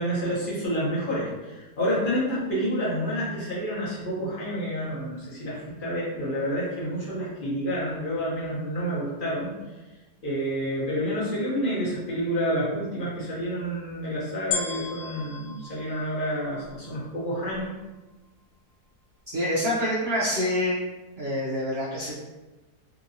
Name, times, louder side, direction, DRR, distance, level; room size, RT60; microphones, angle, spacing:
voice 1, 0.0-9.5 10.2-17.7, equal, 40° left, -7 dB, 0.8 m, -29 dB
sound 1, 14.5-16.9 17.5-17.6, left 5 dB, 80° left, 1.1 m, -34 dB
voice 2, 19.3-20.8 21.2-22.2, left 1 dB, 80° right, -6 dB, 0.5 m, -26 dB
2.9 x 2.8 x 2.6 m, 1.1 s
omnidirectional pair, 1.7 m